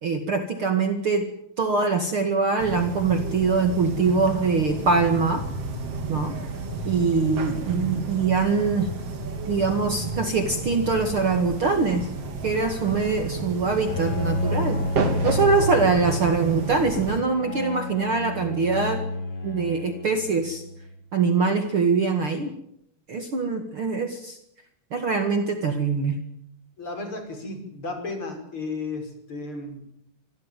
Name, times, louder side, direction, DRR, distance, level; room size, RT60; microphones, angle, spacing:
voice 1, 0.0-1.3 1.6-5.4 6.1-6.3 6.8-8.9 9.4-12.1 12.4-14.9 15.2-19.0 19.4-20.6 21.1-22.5 23.1-24.4 24.9-26.2, right 4 dB, 85° right, 6 dB, 1.1 m, -23 dB
sound 1, 2.6-17.2, right 3 dB, 35° right, 3.1 m, -32 dB
Bowed string instrument, 13.8-20.9, left 2 dB, 55° left, 6.8 m, -31 dB
voice 2, 26.8-29.9, left 3 dB, 25° left, 5 dB, 6.1 m, -34 dB
25.5 x 17.0 x 9.1 m, 0.73 s
omnidirectional pair, 5.9 m